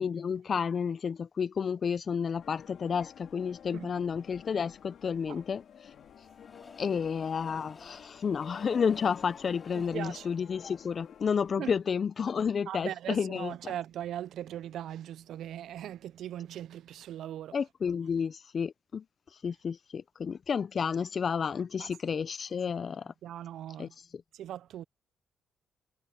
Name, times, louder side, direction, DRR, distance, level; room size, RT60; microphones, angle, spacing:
voice 1, 0.0-5.6 6.8-13.7 17.5-19.0 19.4-23.1 23.8-23.9, left 6 dB, 45° left, 0.4 m, -31 dB
sound 1, 2.4-11.6, left 8 dB, 65° left, 2.7 m, -51 dB
Train, 4.9-12.0 12.5-12.6 12.8-12.9, left 3 dB, 25° left, 5.0 m, -56 dB
voice 2, 9.8-10.3 11.6-11.7 12.7-17.6 21.8-21.9 23.2-23.9 24.3-24.8, right 11 dB, 75° right, 0.3 m, -39 dB
cardioid pair, 90°, 0 cm